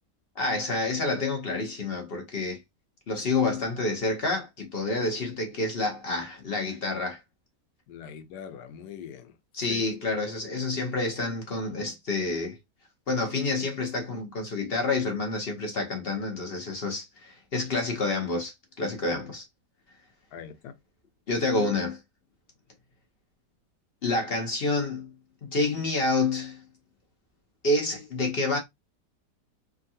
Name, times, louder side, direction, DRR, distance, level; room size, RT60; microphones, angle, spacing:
voice 1, 0.4-2.6 3.1-7.2 9.5-12.6 13.1-19.5 21.3-22.0 24.0-25.1 25.4-26.6 27.6-28.6, left 2 dB, 45° left, 0.8 m, -28 dB
voice 2, 7.9-9.3 9.7-9.8 20.3-20.7, left 8 dB, 85° left, 1.2 m, -42 dB
3.6 x 2.2 x 2.6 m
omnidirectional pair, 1.7 m